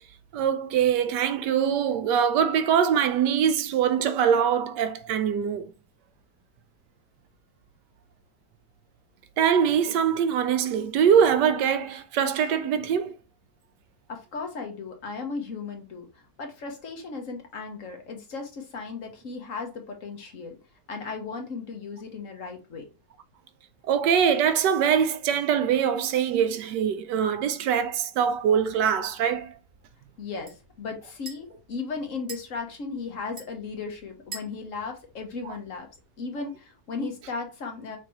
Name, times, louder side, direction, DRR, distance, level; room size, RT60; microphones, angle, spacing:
voice 1, 0.3-5.7 9.4-13.1 23.8-29.5 35.4-35.5, right 8 dB, 85° right, 1.3 m, -23 dB
voice 2, 14.1-20.6 20.9-22.9 30.2-35.9 36.2-38.0, left 4 dB, 55° left, 1.3 m, -36 dB
sound 1, 28.2-36.0, right 3 dB, 35° right, 1.7 m, -49 dB
6.0 x 2.9 x 3.0 m
omnidirectional pair, 1.8 m